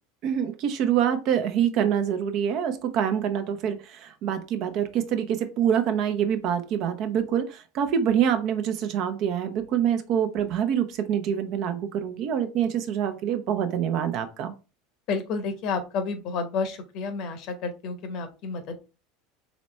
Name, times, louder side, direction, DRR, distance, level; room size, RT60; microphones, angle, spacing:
voice 1, 0.2-14.5, right 9 dB, 50° right, 8 dB, 0.7 m, -26 dB
voice 2, 15.1-18.9, left 4 dB, 50° left, 8 dB, 0.9 m, -30 dB
4.1 x 3.0 x 3.2 m, 0.31 s
hypercardioid pair, 80°, 0 cm